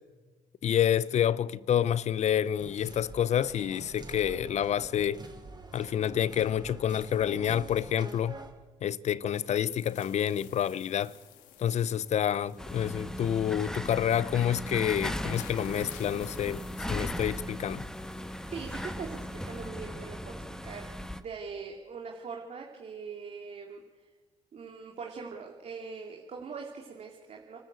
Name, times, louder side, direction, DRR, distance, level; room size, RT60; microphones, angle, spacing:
voice 1, 0.6-5.2 5.7-8.4 8.8-11.2 11.6-17.9, left 10 dB, 60° left, 0.8 m, -28 dB
sound 1, 2.6-8.5, right 2 dB, 35° right, 5.2 m, -46 dB
sound 2, 9.3-19.7, left 10 dB, 90° left, 2.0 m, -55 dB
sound 3, 12.6-21.2, left 1 dB, 5° left, 1.4 m, -37 dB
voice 2, 18.5-20.9 21.2-23.8 24.5-27.6, right 5 dB, 55° right, 2.9 m, -42 dB
28.5 x 13.0 x 8.3 m
supercardioid pair, 70°, 13 cm